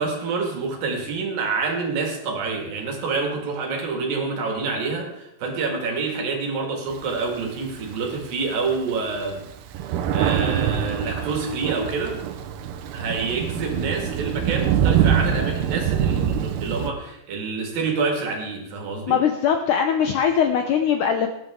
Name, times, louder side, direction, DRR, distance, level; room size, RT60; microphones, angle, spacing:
voice 1, 0.0-9.5 9.7-12.2 12.9-19.2, right 4 dB, 65° right, 2 dB, 3.7 m, -27 dB
Thunder, 6.9-8.2 8.7-8.8 9.1-16.9, right 9 dB, 90° right, 3.0 m, -24 dB
voice 2, 19.1-21.3, left 8 dB, 75° left, 5 dB, 1.9 m, -21 dB
18.5 x 11.0 x 3.7 m, 0.83 s
omnidirectional pair, 4.5 m